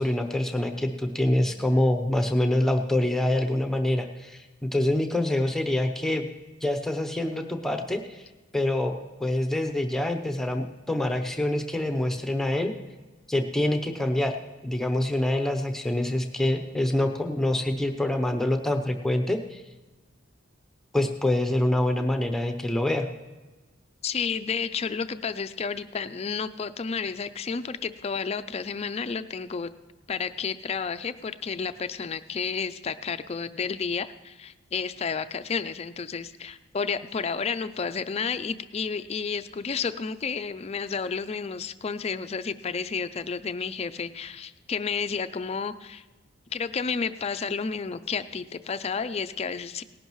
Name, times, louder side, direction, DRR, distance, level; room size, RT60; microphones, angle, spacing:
voice 1, 0.0-6.2 6.6-8.2 8.5-8.9 9.2-12.7 13.3-14.3 14.6-19.6 20.9-23.1, left 1 dB, ahead, 4 dB, 0.7 m, -25 dB
voice 2, 24.0-29.7 30.1-46.0 46.5-49.8, left 5 dB, 30° left, 11 dB, 0.4 m, -31 dB
18.5 x 11.0 x 3.1 m, 1.2 s
head